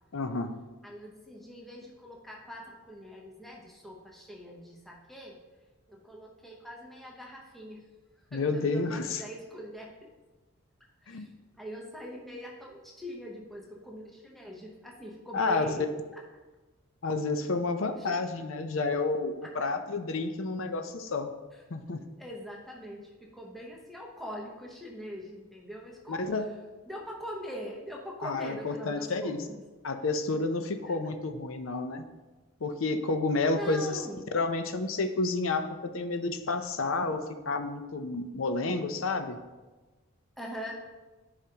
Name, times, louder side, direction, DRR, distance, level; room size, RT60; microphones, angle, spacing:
voice 1, 0.1-0.6 8.3-9.2 11.1-11.3 15.3-15.8 17.0-21.3 21.7-22.0 26.1-26.5 28.2-29.4 29.8-32.0 32.6-34.0 34.3-39.4, left 3 dB, 65° left, 8 dB, 0.6 m, -30 dB
voice 2, 0.8-5.4 5.9-7.8 8.3-10.1 11.0-11.3 11.5-15.8 18.0-18.2 19.4-19.5 21.5-21.6 22.2-26.5 26.9-29.6 30.9-31.0 33.5-34.3 40.4-40.8, equal, ahead, -2 dB, 0.8 m, -43 dB
10.0 x 5.0 x 2.9 m, 1.2 s
head